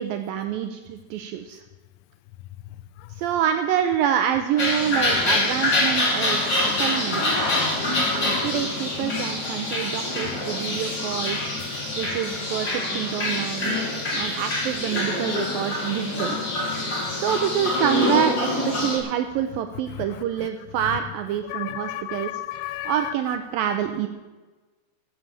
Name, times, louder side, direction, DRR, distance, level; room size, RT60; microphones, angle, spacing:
voice 1, 0.0-1.6 3.2-7.4 8.1-11.5 12.0-13.9 14.1-16.4 17.1-22.3 22.9-24.1, right 9 dB, 90° right, 2.1 m, -27 dB
sound 1, 4.6-19.0, left 2 dB, 30° left, 3.4 m, -25 dB
voice 2, 21.5-22.9, left 15 dB, 80° left, 2.0 m, -32 dB
13.0 x 8.5 x 7.3 m
omnidirectional pair, 4.8 m